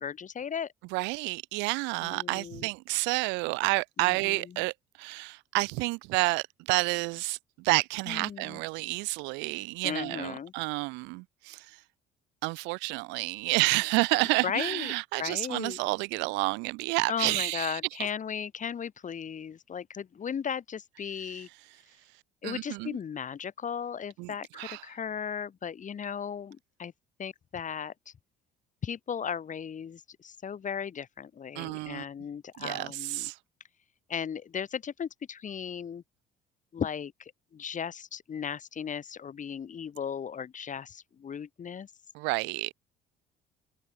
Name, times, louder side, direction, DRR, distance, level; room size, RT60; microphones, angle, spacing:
voice 1, 0.0-0.7 2.0-2.7 4.0-4.6 8.1-8.6 9.8-10.5 14.4-14.9 15.2-15.8 17.1-21.5 22.4-26.9 27.2-28.1 28.8-33.3 34.1-36.0 36.7-41.9, left 7 dB, 45° left, 3.0 m, -36 dB
voice 2, 0.9-4.7 5.0-11.8 12.4-17.8 22.4-23.0 24.2-24.8 31.6-32.0 32.6-33.4 42.1-42.7, right 26 dB, 75° right, 2.4 m, -30 dB
hypercardioid pair, 65°, 18 cm